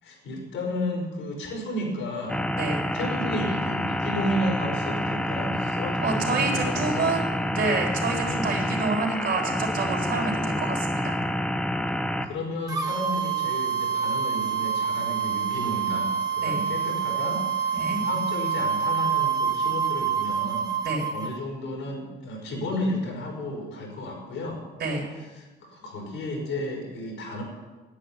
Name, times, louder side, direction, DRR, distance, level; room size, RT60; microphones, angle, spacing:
voice 1, 0.0-2.4 2.9-7.2 8.2-8.5 12.2-17.4 17.7-20.7 21.1-24.6 25.3-27.4, left 1 dB, 85° left, 0 dB, 4.6 m, -32 dB
sound 1, 2.3-12.3, equal, 5° left, 0.9 m, -28 dB
voice 2, 6.0-11.2 16.4-16.6 17.7-18.0 20.8-21.0 24.8-25.0, right 3 dB, 60° right, 0 dB, 3.7 m, -28 dB
sound 2, 12.7-21.3, right 7 dB, 20° right, 1.5 m, -27 dB
9.9 x 8.5 x 9.8 m, 1.2 s
cardioid pair, 90°, 20 cm